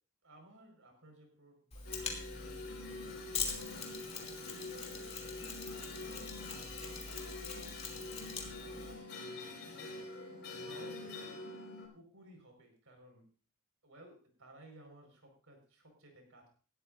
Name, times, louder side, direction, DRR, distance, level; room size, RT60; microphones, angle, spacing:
voice 1, 0.2-11.5 11.9-13.2 13.8-16.5, right 1 dB, 65° right, 3 dB, 5.0 m, -59 dB
Mechanisms, 1.7-8.9, left 5 dB, 30° left, 2.8 m, -43 dB
sound 1, 1.8-11.9, left 2 dB, 55° left, 4.9 m, -45 dB
19.0 x 12.5 x 2.6 m, 0.38 s
head